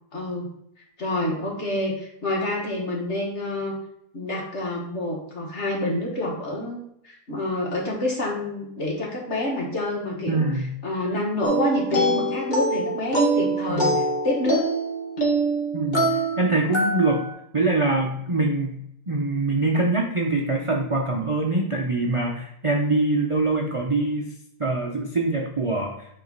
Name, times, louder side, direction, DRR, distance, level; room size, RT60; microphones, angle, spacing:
voice 1, 0.1-0.5 1.0-3.7 4.1-10.5 10.8-14.7, left 1 dB, 45° left, -2 dB, 1.9 m, -27 dB
voice 2, 10.3-10.7 13.7-14.1 15.7-17.2 17.5-18.8 19.1-24.3 24.6-25.9, right 2 dB, 30° right, -1 dB, 0.6 m, -24 dB
sound 1, 11.4-17.3, right 2 dB, 30° left, 1.4 m, -24 dB
9.0 x 3.6 x 4.0 m, 0.75 s
omnidirectional pair, 1.6 m